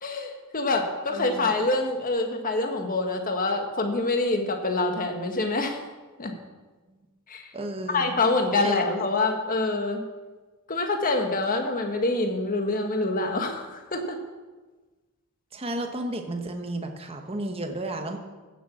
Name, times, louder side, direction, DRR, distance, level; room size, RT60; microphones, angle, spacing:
voice 1, 0.0-5.8 6.2-6.3 7.3-7.4 7.9-10.0 10.7-14.2, left 2 dB, 40° left, 4 dB, 1.6 m, -26 dB
voice 2, 1.1-1.5 6.9-7.0 7.5-8.2 8.6-8.8 15.5-18.2, right 1 dB, 25° right, 4 dB, 1.1 m, -33 dB
15.5 x 7.0 x 7.3 m, 1.3 s
head